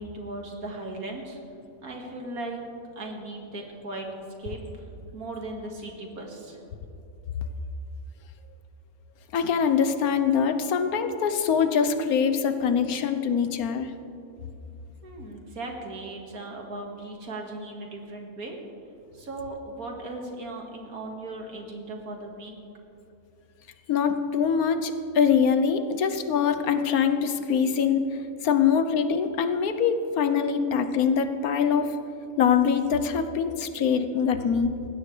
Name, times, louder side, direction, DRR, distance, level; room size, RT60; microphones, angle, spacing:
voice 1, 0.0-1.4 1.8-2.6 3.0-4.1 4.4-4.9 5.1-6.6 15.0-18.6 19.1-22.5, right 2 dB, 75° right, 1 dB, 2.4 m, -37 dB
voice 2, 9.3-13.9 23.9-28.1 28.4-31.9 32.4-34.7, left 7 dB, 85° left, 9 dB, 1.3 m, -23 dB
19.5 x 16.0 x 3.3 m, 2.8 s
omnidirectional pair, 1.5 m